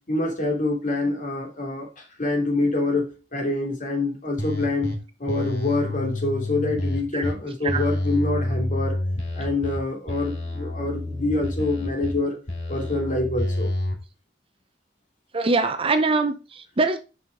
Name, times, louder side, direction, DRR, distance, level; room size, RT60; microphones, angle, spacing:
voice 1, 0.1-9.0 9.3-12.4 12.7-13.7, left 2 dB, 45° left, 2.8 m, -26 dB
sound 1, 4.4-4.9 5.3-7.3 7.7-9.8 10.1-12.1 12.5-13.9, left 1 dB, 70° left, 2.4 m, -28 dB
voice 2, 15.3-17.0, right 3 dB, 30° right, 0.7 m, -23 dB
6.1 x 5.7 x 4.9 m
head